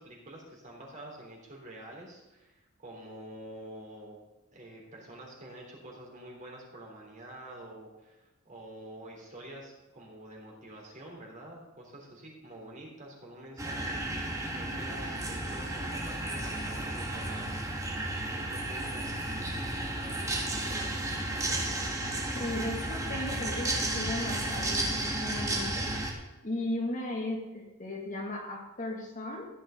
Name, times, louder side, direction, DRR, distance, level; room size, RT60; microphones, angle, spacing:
voice 1, 0.0-4.2 4.5-21.7, right 1 dB, 35° right, -2 dB, 3.6 m, -48 dB
sound 1, 13.6-26.1, right 1 dB, 15° right, 1.8 m, -33 dB
voice 2, 22.3-25.9 26.4-29.5, left 1 dB, 35° left, -1 dB, 2.3 m, -36 dB
15.0 x 9.9 x 3.9 m, 1.0 s
head